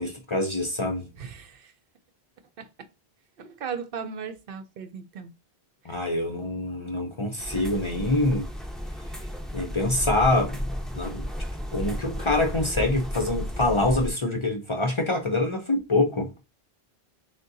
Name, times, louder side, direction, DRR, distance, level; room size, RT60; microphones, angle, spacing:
voice 1, 0.0-1.1 5.8-8.5 9.5-11.3 11.7-16.3, left 2 dB, 35° left, 0.6 m, -25 dB
voice 2, 1.2-1.7 2.6-2.7 3.4-5.3 5.9-6.0, right 6 dB, 65° right, 0.7 m, -37 dB
sound 1, 7.4-14.1, equal, ahead, 0.7 m, -33 dB
6.3 x 2.2 x 2.6 m
omnidirectional pair, 1.1 m